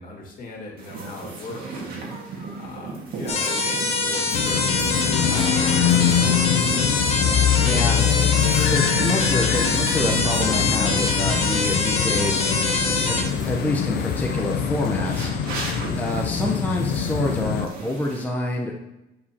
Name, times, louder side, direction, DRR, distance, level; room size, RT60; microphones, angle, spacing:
voice 1, 0.0-2.0 2.5-6.3, left 3 dB, 55° left, -1 dB, 2.0 m, -38 dB
sound 1, 0.8-18.2, right 3 dB, 65° right, 1.9 m, -36 dB
sound 2, 3.3-13.2, left 3 dB, 35° left, 1.3 m, -24 dB
sound 3, 4.3-17.7, left 8 dB, 70° left, 0.5 m, -23 dB
voice 2, 7.6-8.0 8.7-12.5 13.1-15.3 16.0-18.7, left 2 dB, 10° left, -1 dB, 0.8 m, -27 dB
8.2 x 4.8 x 2.9 m, 0.94 s
cardioid pair, 110°, 17 cm